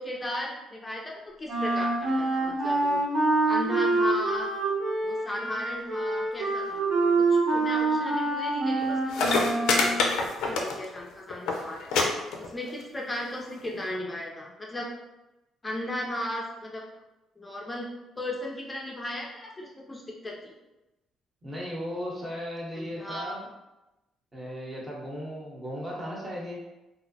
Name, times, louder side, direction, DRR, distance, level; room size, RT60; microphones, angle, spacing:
voice 1, 0.0-3.0 3.5-4.5 5.0-6.9 7.3-10.0 10.5-11.9 12.4-14.9 15.6-16.8 17.4-17.9 18.2-20.5 22.8-23.4, left 1 dB, 20° left, -2 dB, 0.4 m, -36 dB
Wind instrument woodwind instrument, 1.5-10.1, right 3 dB, 80° right, 1.4 m, -26 dB
sound 1, 8.8-8.9 9.1-11.0 11.3-11.6 11.9-12.0 12.3-12.8 13.6-13.7, left 4 dB, 85° left, 0.4 m, -25 dB
voice 2, 21.4-23.5 24.3-26.6, equal, 25° right, -4 dB, 0.8 m, -36 dB
2.4 x 2.0 x 2.6 m, 0.97 s
cardioid pair, 95°, 0 cm